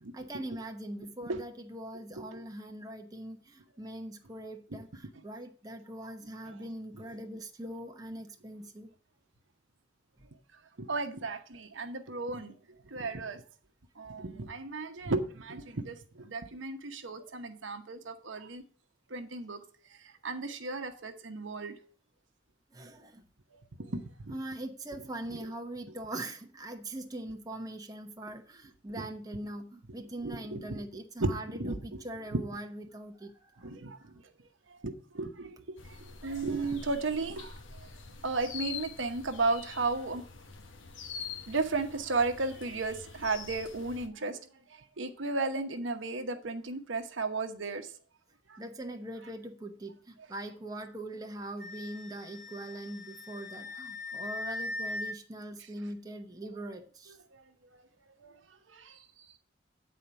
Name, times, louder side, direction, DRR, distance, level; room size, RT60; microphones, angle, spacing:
voice 1, 0.1-8.9 22.7-23.2 24.3-33.7 48.6-57.2, right 1 dB, 20° right, 1.0 m, -42 dB
voice 2, 10.8-12.5 12.9-13.4 14.0-18.6 19.1-19.6 20.2-21.7 23.8-24.3 29.0-29.1 30.2-30.8 31.2-32.0 32.3-32.4 33.6-34.0 34.8-36.0 36.2-37.5 38.2-40.2 41.5-44.4 44.7-47.9 48.5-48.6 57.3-57.4 58.2-58.4 58.7-59.0, right 3 dB, 70° right, 1.0 m, -34 dB
sound 1, 35.8-44.1, left 6 dB, 75° left, 1.2 m, -45 dB
Wind instrument woodwind instrument, 51.6-55.1, left 2 dB, 50° left, 2.7 m, -40 dB
9.1 x 4.3 x 6.8 m
head